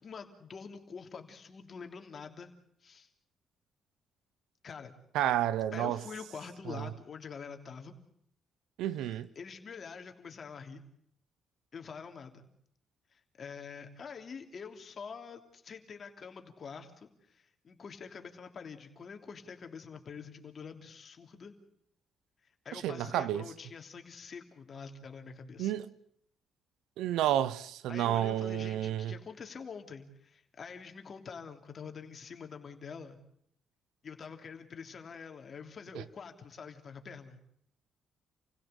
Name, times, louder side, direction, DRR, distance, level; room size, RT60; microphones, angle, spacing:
voice 1, 0.0-2.5 2.8-3.1 4.6-4.9 5.7-7.9 9.0-10.8 11.7-12.5 13.1-21.5 22.6-25.7 27.9-33.2 34.0-37.4, left 5 dB, 45° left, 3.2 m, -46 dB
voice 2, 5.1-6.0 6.7-6.9 8.8-9.3 22.7-23.4 25.6-25.9 27.0-29.1 35.9-36.0, right 12 dB, 90° right, 0.9 m, -30 dB
28.5 x 16.5 x 8.2 m
cardioid pair, 90°, 0 cm